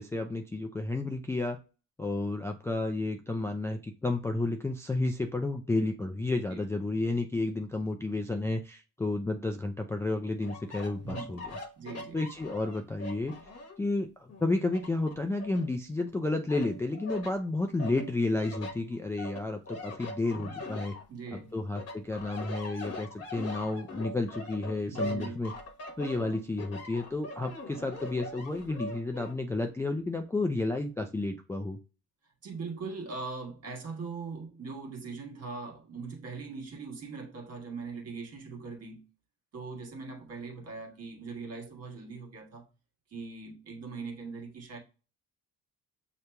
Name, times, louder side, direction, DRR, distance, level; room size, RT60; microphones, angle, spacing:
voice 1, 0.0-1.6 2.0-11.4 12.1-13.3 13.8-20.9 21.3-25.5 26.0-31.8, left 2 dB, 10° left, 0.3 m, -31 dB
sound 1, 10.4-13.9 14.3-16.1 16.5-17.3 17.8-21.4 21.7-29.3, left 1 dB, 50° left, 1.1 m, -41 dB
voice 2, 11.0-11.3 11.8-12.2 20.3-20.6 21.1-21.5 24.9-25.4 32.4-39.0 39.5-42.7 43.1-44.8, right 4 dB, 50° right, 1.4 m, -41 dB
6.5 x 2.9 x 2.2 m
cardioid pair, 115°, 32 cm